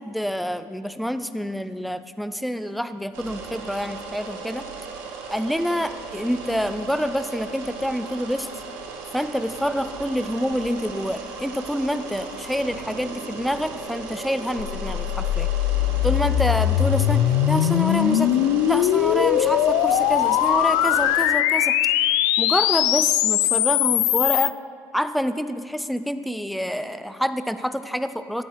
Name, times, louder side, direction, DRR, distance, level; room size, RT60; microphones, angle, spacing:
voice 1, 0.0-4.7 5.3-8.5 9.1-15.5 16.0-21.7 22.4-24.6 24.9-28.4, equal, ahead, 11 dB, 0.4 m, -27 dB
sound 1, 3.1-21.3, right 4 dB, 75° right, 2.3 m, -36 dB
sound 2, 14.6-24.5, left 12 dB, 70° left, 0.6 m, -21 dB
15.5 x 12.0 x 4.7 m, 2.2 s
cardioid pair, 155°, 6 cm